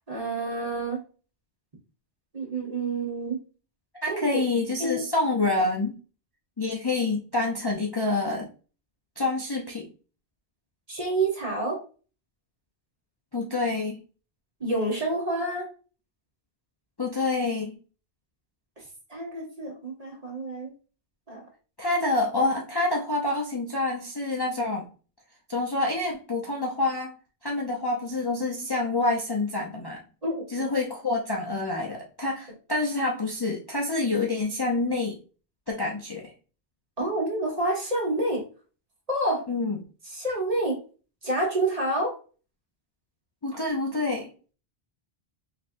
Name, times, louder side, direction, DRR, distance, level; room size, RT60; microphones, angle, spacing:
voice 1, 0.1-1.0 2.3-3.4 4.1-4.3 4.8-5.0 10.9-11.8 14.6-15.7 19.1-20.7 21.3-21.4 30.2-30.7 37.0-38.4 39.1-39.4 40.1-40.8 41.2-42.1, right 2 dB, 35° right, -2 dB, 1.3 m, -28 dB
voice 2, 4.0-6.0 6.6-8.5 9.2-9.9 13.3-14.0 17.0-17.8 21.8-24.9 25.5-27.1 27.4-30.0 30.5-35.2 35.7-36.3 39.5-39.8 43.4-44.3, left 2 dB, 30° left, -2 dB, 0.6 m, -27 dB
4.2 x 3.3 x 2.6 m, 0.37 s
omnidirectional pair, 1.1 m